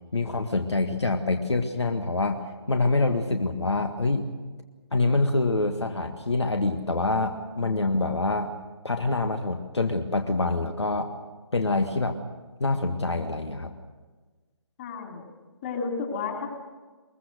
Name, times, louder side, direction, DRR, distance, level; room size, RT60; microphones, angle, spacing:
voice 1, 0.1-4.3 4.9-8.5 8.8-11.1 11.5-12.1 12.6-13.7, left 3 dB, 70° left, 6 dB, 1.8 m, -26 dB
voice 2, 14.8-15.2 15.6-16.5, left 5 dB, 25° left, 2 dB, 3.5 m, -31 dB
23.0 x 22.0 x 6.5 m, 1.3 s
figure-of-eight pair, 145°, 15 cm